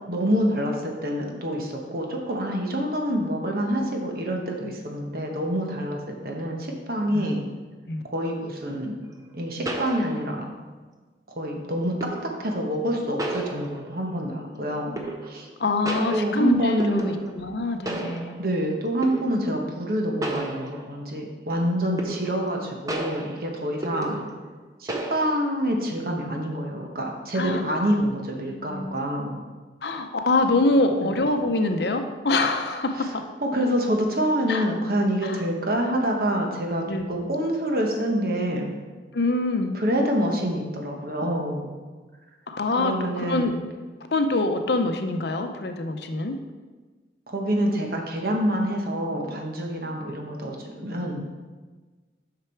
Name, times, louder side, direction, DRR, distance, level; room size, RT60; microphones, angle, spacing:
voice 1, 0.1-7.4 8.1-9.0 9.3-10.5 11.4-15.5 16.1-17.1 17.9-18.1 18.4-24.2 24.8-29.4 31.0-31.1 33.0-33.1 33.4-38.7 39.7-41.7 42.8-43.5 47.3-51.3, equal, 55° right, 1 dB, 1.1 m, -27 dB
sound 1, 9.0-9.1 9.7-10.6 12.0-12.5 13.2-14.1 15.0-15.6 15.9-17.5 17.9-18.6 19.0-19.5 20.2-21.1 22.0-22.6 22.9-24.6 24.9-25.5, right 2 dB, 20° right, 0.6 m, -33 dB
voice 2, 15.6-18.4 27.3-27.9 28.5-28.9 29.8-33.3 34.5-34.6 35.2-35.4 36.9-37.3 39.1-39.8 42.5-43.5 44.1-46.4, left 2 dB, 65° left, 6 dB, 0.7 m, -25 dB
6.6 x 5.9 x 4.5 m, 1.3 s
head